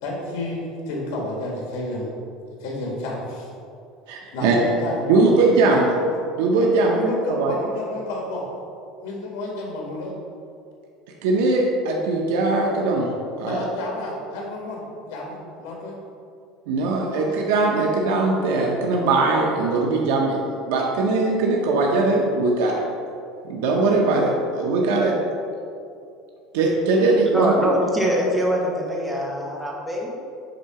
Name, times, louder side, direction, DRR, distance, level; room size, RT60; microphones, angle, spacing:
voice 1, 0.0-2.1 2.6-3.5 4.3-5.3 5.6-5.8 6.7-8.4 9.0-10.1 13.5-16.0 17.0-17.3, left 1 dB, 75° left, -2 dB, 1.4 m, -30 dB
voice 2, 4.1-4.6 5.1-5.8 6.4-7.6 11.2-13.1 13.4-13.6 16.7-20.4 20.7-22.8 23.4-25.1 26.5-27.5, right 3 dB, 85° right, -1 dB, 0.8 m, -20 dB
voice 3, 27.3-30.1, equal, 5° right, -3 dB, 1.1 m, -23 dB
7.8 x 2.8 x 5.7 m, 2.5 s
cardioid pair, 155°, 0 cm